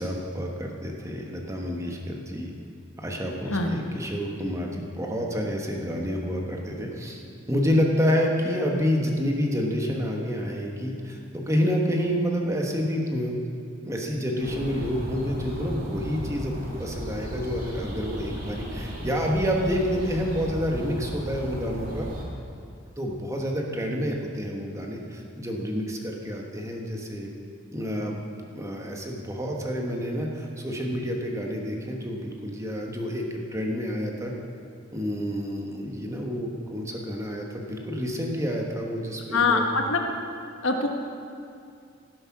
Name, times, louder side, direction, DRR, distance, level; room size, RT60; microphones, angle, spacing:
voice 1, 0.0-2.5 3.0-13.4 13.8-22.1 23.0-27.3 27.7-28.2 28.5-34.3 34.9-39.6, equal, 15° right, 0 dB, 1.4 m, -28 dB
sound 1, 14.4-22.2, equal, 45° right, 2.9 m, -36 dB
voice 2, 39.3-40.0 40.6-40.9, left 4 dB, 75° left, 3 dB, 1.4 m, -23 dB
16.5 x 7.8 x 6.1 m, 2.4 s
head